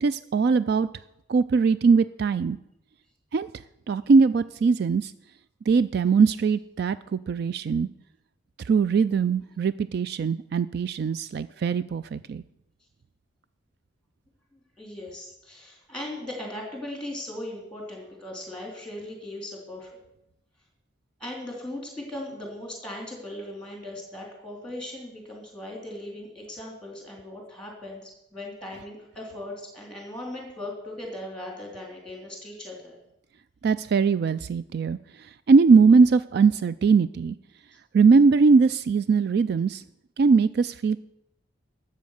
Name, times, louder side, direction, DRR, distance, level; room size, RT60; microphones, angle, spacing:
voice 1, 0.0-0.9 1.3-2.6 3.3-3.5 3.9-5.1 5.7-7.9 8.6-12.4 33.6-35.0 35.5-37.3 37.9-39.8 40.2-41.0, right 5 dB, 55° right, 15 dB, 0.3 m, -21 dB
voice 2, 14.5-20.0 21.2-33.0, left 1 dB, 5° left, 0 dB, 3.4 m, -38 dB
12.5 x 7.6 x 6.5 m, 0.82 s
head